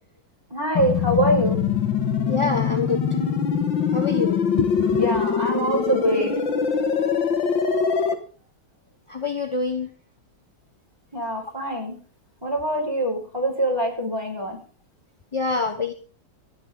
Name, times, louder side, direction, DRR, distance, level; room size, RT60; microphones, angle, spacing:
voice 1, 0.5-1.6 4.9-6.3 11.1-12.0 12.4-14.6, right 1 dB, 10° right, 0 dB, 5.4 m, -24 dB
sound 1, 0.7-8.1, left 6 dB, 85° left, 2.4 m, -23 dB
voice 2, 2.3-3.0 3.9-5.1 9.1-9.9 15.3-15.9, left 4 dB, 25° left, 6 dB, 0.7 m, -26 dB
26.5 x 9.8 x 3.9 m, 0.38 s
omnidirectional pair, 2.0 m